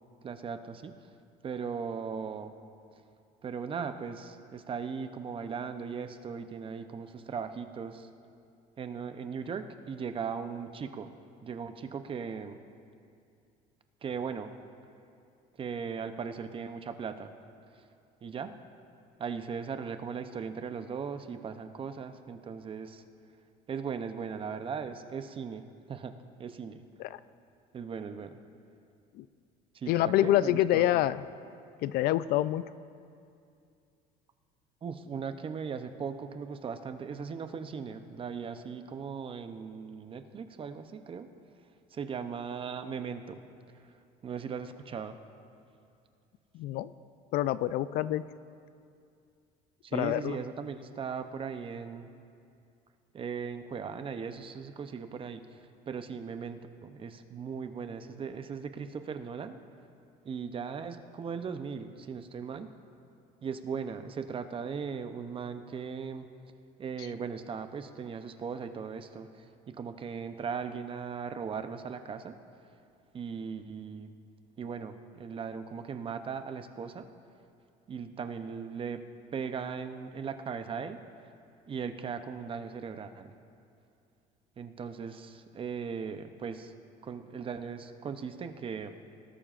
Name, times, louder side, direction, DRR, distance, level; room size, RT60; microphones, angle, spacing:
voice 1, 0.2-0.9 1.4-2.5 3.4-8.1 8.8-11.1 11.4-12.6 14.0-14.5 15.6-17.3 18.2-18.5 19.2-23.0 23.7-26.1 26.4-26.8 27.7-28.4 29.7-30.8 34.8-41.3 41.9-43.4 44.2-45.2 49.8-52.1 53.1-55.4 55.9-59.6 60.2-62.7 63.4-66.3 66.8-72.3 73.1-74.1 74.6-77.0 77.9-79.0 79.3-81.0 81.7-83.3 84.6-86.7 87.0-89.0, right 6 dB, 30° right, 9 dB, 0.6 m, -38 dB
voice 2, 29.9-31.2 31.8-32.6 46.5-46.9 47.3-48.2 49.9-50.4, left 14 dB, 60° left, 16 dB, 0.4 m, -27 dB
19.5 x 12.0 x 2.5 m, 2.5 s
cardioid pair, 120°, 18 cm